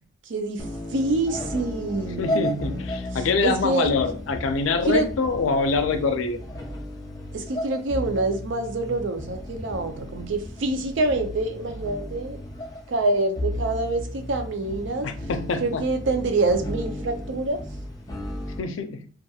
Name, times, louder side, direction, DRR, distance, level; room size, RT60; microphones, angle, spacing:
voice 1, 0.2-2.8 3.1-3.9 4.9-5.1 7.3-12.4 12.9-15.1 15.6-17.6, right 2 dB, 75° right, 0.5 m, -26 dB
sound 1, 0.6-18.6, left 1 dB, 20° left, 0.4 m, -34 dB
voice 2, 2.2-6.4 15.0-15.8 18.6-19.0, left 4 dB, 90° left, 0.4 m, -25 dB
2.7 x 2.4 x 2.3 m
head